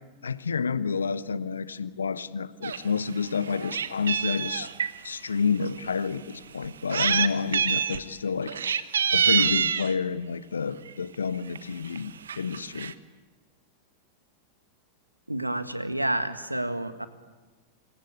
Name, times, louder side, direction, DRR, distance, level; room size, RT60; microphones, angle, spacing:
voice 1, 0.2-4.7 5.0-8.6 9.1-12.9, left 5 dB, 70° left, 15 dB, 1.1 m, -29 dB
Meow, 2.6-2.8 3.2-4.9 5.6-5.7 6.6-7.3 7.5-8.0 8.4-9.9 10.9-11.1 11.5-11.6 11.8-12.0 12.3-12.9, right 7 dB, 70° right, 1.2 m, -26 dB
voice 2, 15.3-17.1, right 1 dB, 85° right, 10 dB, 1.7 m, -29 dB
27.0 x 25.5 x 8.5 m, 1.3 s
figure-of-eight pair, 90°, 0 cm